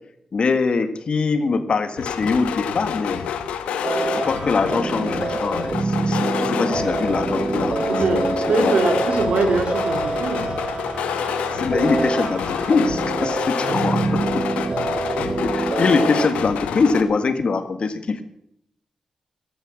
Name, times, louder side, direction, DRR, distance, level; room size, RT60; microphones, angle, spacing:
voice 1, 0.3-3.2 4.0-8.7 11.5-14.5 15.4-18.2, left 4 dB, 60° left, 10 dB, 1.8 m, -23 dB
sound 1, 2.0-17.0, left 8 dB, 90° left, 1.1 m, -28 dB
sound 2, 3.8-16.3, right 3 dB, 45° right, 1.0 m, -26 dB
voice 2, 7.9-10.4 13.6-14.0 14.7-14.8, right 2 dB, 70° right, 4 dB, 3.7 m, -23 dB
14.0 x 12.5 x 6.4 m, 0.74 s
supercardioid pair, 45°, 2 cm